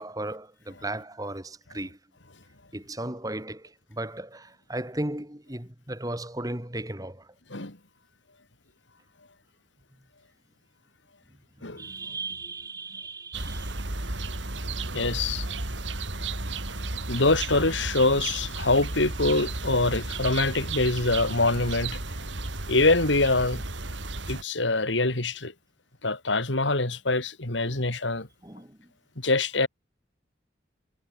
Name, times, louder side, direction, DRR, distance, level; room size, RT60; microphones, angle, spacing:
voice 1, 0.0-2.0 2.7-7.3 11.7-13.8 16.7-16.9 27.7-27.8 28.4-28.9, right 1 dB, 20° right, 3.3 m, -36 dB
sound 1, 13.3-24.4, right 2 dB, 75° right, 3.6 m, -33 dB
voice 2, 14.9-15.5 17.1-22.0 22.7-23.6 24.3-25.5 26.0-28.3 29.2-29.7, left 2 dB, 80° left, 3.5 m, -24 dB
head